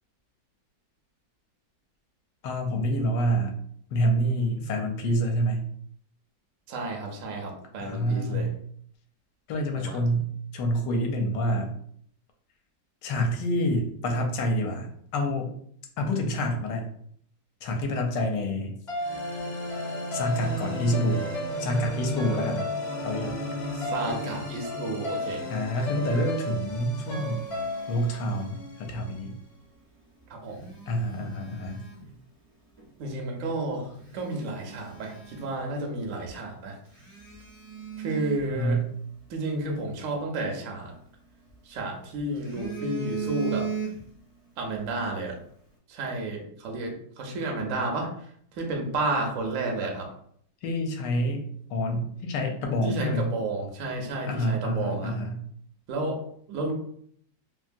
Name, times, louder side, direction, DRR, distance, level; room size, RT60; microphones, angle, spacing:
voice 1, 2.4-3.5 3.9-5.6 7.8-8.5 9.5-10.3 10.5-11.7 13.0-15.5 16.0-16.8 17.6-18.7 20.1-21.2 21.6-22.7 23.0-23.4 25.5-27.4 27.9-29.4 30.9-31.8 38.5-38.8 50.6-51.4 51.7-53.3 54.3-55.4, equal, 75° left, 3 dB, 1.2 m, -27 dB
voice 2, 6.7-8.5 9.8-10.0 23.7-25.5 30.3-30.7 33.0-36.8 38.0-38.9 39.3-40.9 41.6-43.7 44.6-45.4 45.9-48.3 48.5-50.1 52.8-55.2 55.9-56.7, right 2 dB, 70° right, 1 dB, 0.7 m, -31 dB
sound 1, 18.9-29.1, left 1 dB, 45° left, 0.9 m, -33 dB
Telephone, 26.4-29.0 30.3-32.2 32.8-32.9 33.5-33.6 33.9-36.0 36.3-36.4 36.9-39.3 40.8-41.8 42.2-44.3 44.6-44.8, right 5 dB, 90° right, 0.3 m, -38 dB
3.0 x 2.4 x 2.5 m, 0.64 s
omnidirectional pair, 2.0 m